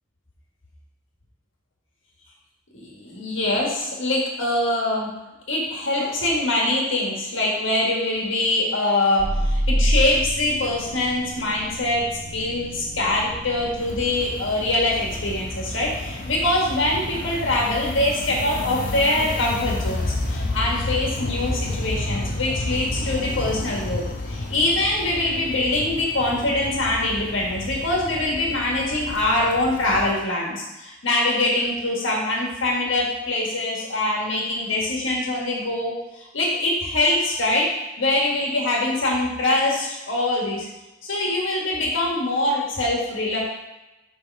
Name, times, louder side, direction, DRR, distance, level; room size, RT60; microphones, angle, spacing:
voice 1, 2.7-5.1 5.5-37.7 38.0-40.7 41.0-43.4, left 2 dB, 65° left, -3 dB, 1.7 m, -23 dB
sound 1, 9.2-14.2, equal, 35° right, 1.3 m, -27 dB
sound 2, 13.8-30.1, left 2 dB, 45° left, 0.7 m, -31 dB
6.5 x 3.6 x 4.6 m, 1.0 s
head